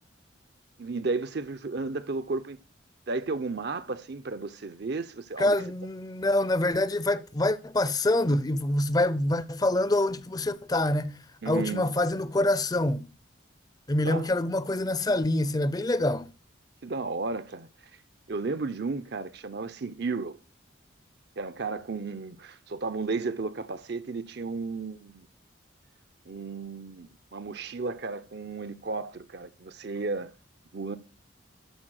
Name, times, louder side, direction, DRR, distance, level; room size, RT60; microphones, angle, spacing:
voice 1, 0.8-2.6 3.1-5.6 11.4-11.9 14.0-14.3 16.8-17.7 18.3-20.4 21.4-25.3 26.3-30.3 30.7-31.0, right 3 dB, 55° right, 0.6 m, -33 dB
voice 2, 5.4-11.2 11.5-13.1 13.9-16.3, left 1 dB, 20° left, 0.5 m, -26 dB
13.5 x 4.6 x 6.4 m
head